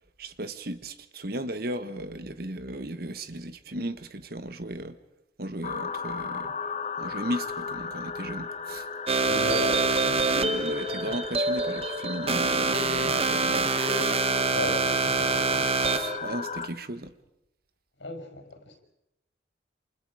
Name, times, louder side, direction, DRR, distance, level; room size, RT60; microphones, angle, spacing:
voice 1, 0.2-5.0 5.4-6.5 7.0-8.9 10.3-13.7 15.9-17.1, right 1 dB, 55° right, 1.4 m, -36 dB
sound 1, 5.6-16.7, left 5 dB, 40° left, 1.0 m, -36 dB
sound 2, 9.1-16.2, right 3 dB, 35° right, 1.1 m, -26 dB
voice 2, 9.3-10.5 11.0-11.1 14.5-15.7 18.0-18.8, left 1 dB, 90° left, 5.7 m, -36 dB
29.0 x 28.0 x 5.0 m
head